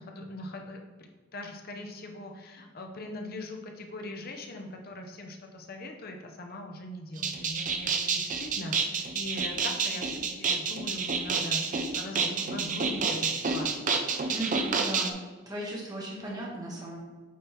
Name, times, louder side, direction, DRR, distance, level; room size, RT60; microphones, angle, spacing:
voice 1, 0.0-14.0, left 1 dB, 50° left, 3 dB, 0.8 m, -41 dB
sound 1, 7.2-15.1, right 5 dB, 40° right, 0.5 m, -29 dB
voice 2, 14.3-15.2 15.4-17.0, right 1 dB, 20° right, -4 dB, 1.3 m, -36 dB
8.4 x 3.9 x 2.9 m, 1.4 s
head